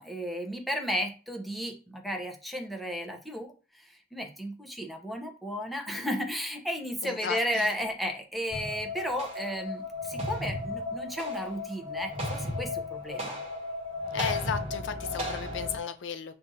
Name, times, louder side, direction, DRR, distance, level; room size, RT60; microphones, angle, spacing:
voice 1, 0.0-13.4, equal, ahead, 0.6 m, -34 dB
voice 2, 7.0-7.7 14.1-16.4, left 7 dB, 85° left, 0.5 m, -35 dB
sound 1, 8.5-15.8, left 2 dB, 35° right, 1.1 m, -35 dB
6.1 x 2.5 x 2.6 m
head